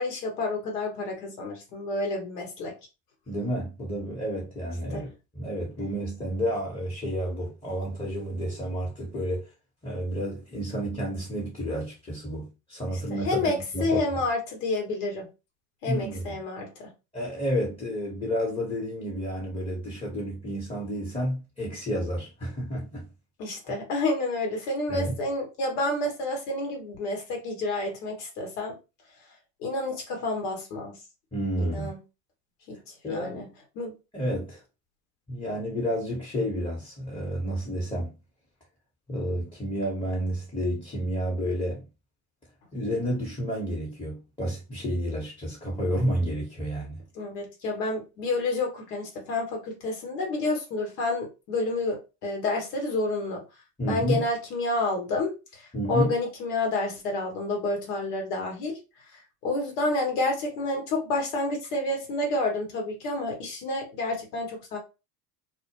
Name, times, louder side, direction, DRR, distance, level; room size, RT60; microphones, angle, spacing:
voice 1, 0.0-2.7 4.9-5.0 13.1-15.3 15.8-16.9 23.4-28.8 29.6-31.0 31.6-32.0 32.7-32.8 33.1-33.5 33.8-33.9 47.1-53.4 53.9-58.8 59.4-64.8, left 2 dB, 70° left, 1.0 m, -29 dB
voice 2, 3.3-9.5 9.8-14.0 15.9-16.4 17.1-23.1 24.9-25.1 31.3-31.9 33.0-33.5 34.1-34.6 35.3-38.1 39.1-41.8 42.7-47.0 53.8-54.2 55.7-56.1, equal, 10° left, 0.9 m, -30 dB
2.1 x 2.1 x 2.9 m
hypercardioid pair, 70°, 50 cm